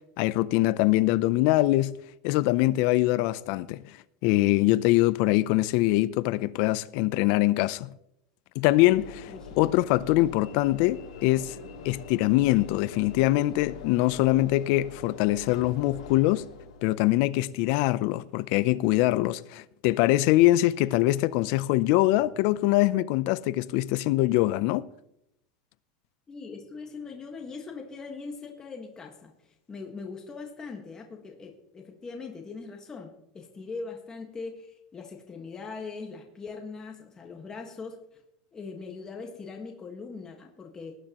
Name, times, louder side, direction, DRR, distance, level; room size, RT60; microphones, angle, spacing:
voice 1, 0.2-2.0 2.2-3.8 4.2-7.9 8.6-11.5 11.8-16.4 16.8-24.9, left 17 dB, 60° left, 0.5 m, -23 dB
Train / Engine / Alarm, 8.9-17.1, left 6 dB, 80° left, 2.6 m, -44 dB
voice 2, 9.3-9.6 11.6-11.8 26.3-29.3 29.7-38.2 38.5-40.9, left 4 dB, 20° left, 1.6 m, -41 dB
19.0 x 9.7 x 3.0 m
supercardioid pair, 130°, 3 cm